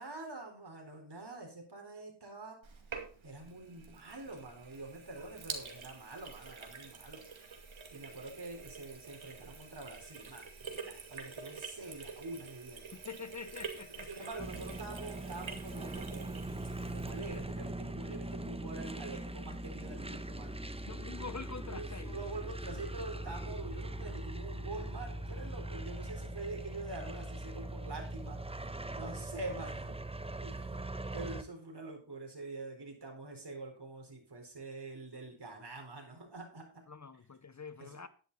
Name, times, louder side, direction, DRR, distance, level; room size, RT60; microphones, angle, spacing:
voice 1, 0.0-2.6 3.2-7.2 7.9-12.8 14.1-16.4 16.9-20.5 21.7-30.0 30.4-30.8 31.1-36.8 37.8-38.0, right 2 dB, 50° right, 4.4 m, -45 dB
Sink (filling or washing), 2.6-17.7, right 5 dB, 70° right, 2.4 m, -47 dB
voice 2, 12.9-14.3 20.8-22.2 36.9-38.1, left 5 dB, 35° left, 0.8 m, -45 dB
sound 1, 14.4-31.4, right 1 dB, 10° right, 1.0 m, -41 dB
10.5 x 10.5 x 4.1 m
cardioid pair, 60°, 49 cm